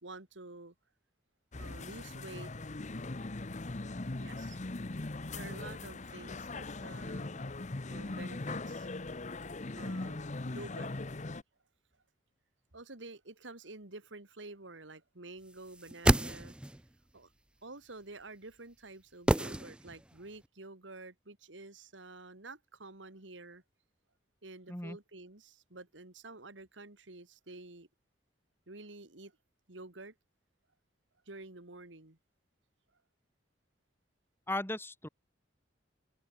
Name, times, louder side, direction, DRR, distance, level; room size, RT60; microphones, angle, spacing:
voice 1, 0.0-0.7 1.6-2.5 4.2-4.6 5.3-7.5 7.9-8.9 9.8-10.9 12.7-16.6 17.1-17.3 17.6-23.6 24.4-27.9 28.7-29.3 29.7-30.1 31.3-32.2, right 2 dB, 85° right, 2.6 m, -49 dB
sound 1, 1.5-11.4, left 2 dB, 40° left, 1.0 m, -40 dB
sound 2, 15.7-16.9 19.3-20.2 20.4-20.5, right 1 dB, 5° right, 0.4 m, -29 dB
voice 2, 34.5-35.1, left 1 dB, 15° left, 3.8 m, -36 dB
open air
head